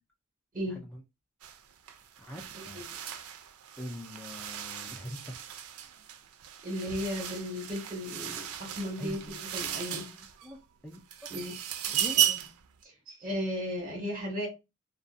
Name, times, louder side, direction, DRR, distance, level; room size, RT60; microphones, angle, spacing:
voice 1, 0.7-1.0 2.2-2.8 3.8-5.3 9.0-9.4 9.9-10.0 10.4-10.6 10.8-11.0 11.9-12.2, left 1 dB, 5° left, 0.4 m, -43 dB
sound 1, 1.4-1.6 1.9-10.5 10.9-12.6, right 10 dB, 70° right, 0.4 m, -35 dB
voice 2, 2.5-2.8 6.6-10.1 11.3-11.5 12.1-12.4 13.1-14.5, equal, 40° right, 1.3 m, -35 dB
2.5 x 2.3 x 2.4 m
head